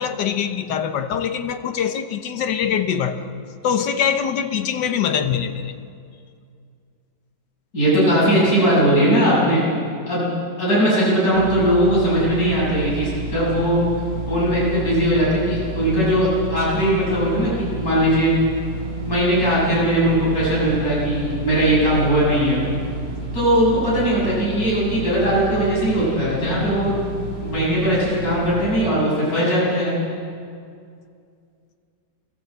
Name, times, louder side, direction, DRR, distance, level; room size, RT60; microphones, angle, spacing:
voice 1, 0.0-3.3 3.6-5.7, left 8 dB, 85° left, 8 dB, 1.7 m, -23 dB
voice 2, 7.7-9.6 10.1-10.3 10.6-13.8 14.3-18.3 19.1-22.6 23.3-27.0 27.4-30.0, right 1 dB, 55° left, -7 dB, 7.4 m, -19 dB
sound 1, 11.3-28.9, right 2 dB, 55° right, 4.1 m, -31 dB
22.5 x 16.0 x 8.1 m, 2.3 s
omnidirectional pair, 1.8 m